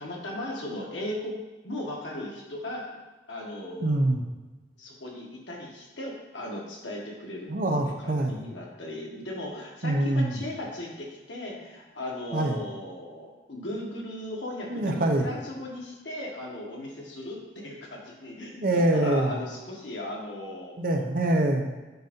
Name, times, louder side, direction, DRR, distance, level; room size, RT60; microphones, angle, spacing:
voice 1, 0.0-1.3 1.6-2.9 3.3-4.0 4.8-7.5 8.0-20.8, left 1 dB, 90° left, -2 dB, 1.4 m, -37 dB
voice 2, 3.8-4.2 7.5-8.5 9.8-10.4 12.3-12.6 14.7-15.3 18.6-19.4 20.8-21.7, right 1 dB, 50° right, 3 dB, 0.7 m, -24 dB
7.9 x 2.7 x 5.2 m, 1.2 s
head